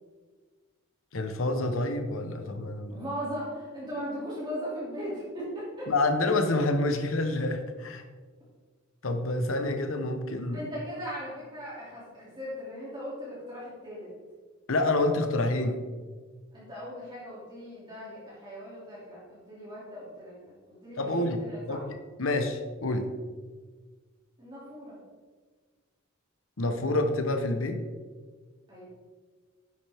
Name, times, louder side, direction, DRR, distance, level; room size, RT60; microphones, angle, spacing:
voice 1, 1.1-3.0 5.9-8.0 9.0-10.6 14.7-15.8 21.0-21.4 21.7-21.8 22.2-23.1 26.6-27.8, left 2 dB, 75° left, 7 dB, 1.0 m, -27 dB
voice 2, 2.9-5.9 10.5-14.1 16.5-21.8 24.4-25.0 28.7-28.9, equal, 25° right, -8 dB, 2.6 m, -38 dB
10.0 x 7.4 x 3.5 m, 1.5 s
head